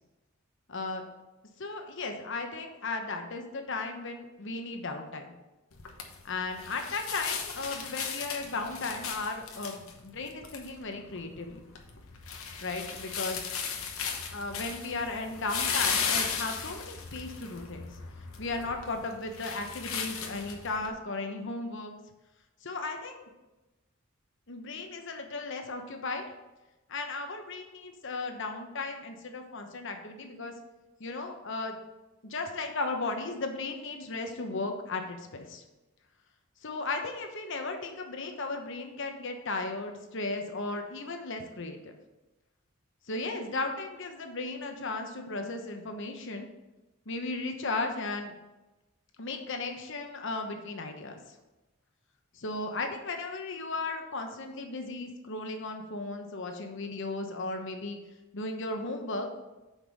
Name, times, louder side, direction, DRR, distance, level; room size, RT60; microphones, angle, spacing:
voice 1, 0.7-1.0 1.6-5.3 6.2-11.7 12.6-13.4 14.3-17.9 18.4-21.9 22.6-23.2 24.5-26.2 26.9-30.5 31.0-31.8 32.2-35.6 36.6-42.0 43.1-46.5 47.1-48.3 49.2-51.2 52.3-58.0 58.3-59.3, left 3 dB, 60° left, 4 dB, 1.0 m, -35 dB
sound 1, 5.7-20.9, left 6 dB, 90° left, 1.0 m, -36 dB
5.9 x 5.3 x 6.1 m, 1.0 s
head